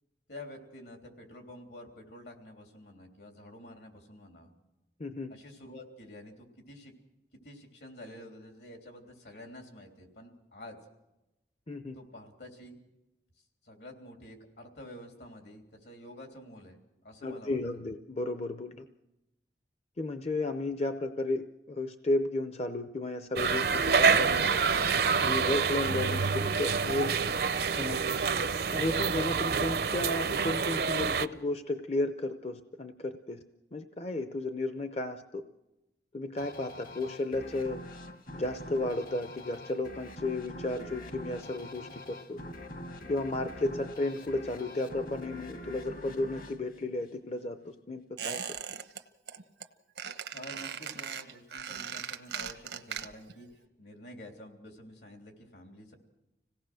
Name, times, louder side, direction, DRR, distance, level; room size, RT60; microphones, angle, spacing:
voice 1, 0.3-4.5 5.3-6.9 7.4-10.8 11.9-12.8 13.4-17.6 50.3-55.9, left 1 dB, 75° left, 3 dB, 3.5 m, -49 dB
voice 2, 5.0-5.3 11.7-11.9 17.2-18.7 20.0-24.5 25.2-27.1 27.8-28.2 28.7-33.4 33.7-35.4 36.1-37.8 38.3-42.4 43.1-48.4, left 2 dB, 35° left, 8 dB, 0.6 m, -33 dB
sound 1, 23.4-31.3, right 5 dB, 60° right, 0.6 m, -27 dB
sound 2, 36.4-47.6, left 1 dB, 50° left, 1.3 m, -45 dB
Squeak, 48.2-49.0 49.3-49.7 50.0-53.4 53.6-53.7, right 7 dB, 90° right, 1.1 m, -39 dB
26.0 x 17.5 x 6.3 m, 0.96 s
head